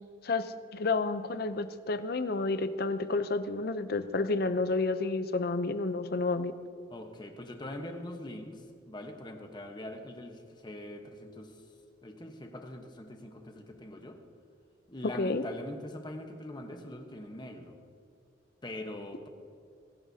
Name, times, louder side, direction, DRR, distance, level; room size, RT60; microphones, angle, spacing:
voice 1, 0.2-6.5 15.0-15.4, left 3 dB, 50° left, 11 dB, 0.6 m, -30 dB
voice 2, 6.9-11.6 12.0-14.2 14.9-17.8 18.6-19.3, left 1 dB, 25° left, 4 dB, 1.1 m, -43 dB
25.0 x 11.0 x 2.8 m, 2.3 s
head